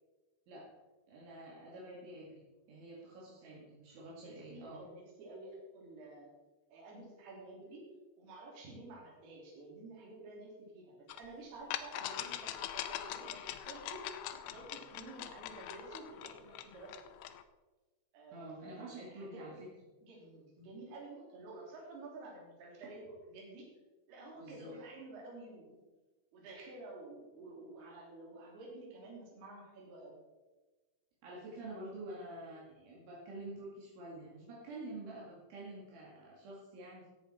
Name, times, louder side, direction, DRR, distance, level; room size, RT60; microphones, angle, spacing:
voice 1, 1.1-2.4 2.7-4.8 18.3-19.6 24.4-24.7 31.2-37.1, right 2 dB, 70° right, -5 dB, 4.5 m, -48 dB
voice 2, 4.0-6.3 6.7-7.9 8.2-14.2 14.4-17.1 18.1-19.6 20.0-23.7 24.1-25.8 26.3-30.2, right 2 dB, 55° right, -2 dB, 4.8 m, -51 dB
sound 1, 11.1-11.2 11.7-17.4, left 12 dB, 80° left, 2.9 m, -42 dB
15.5 x 8.9 x 4.3 m, 1.2 s
omnidirectional pair, 5.9 m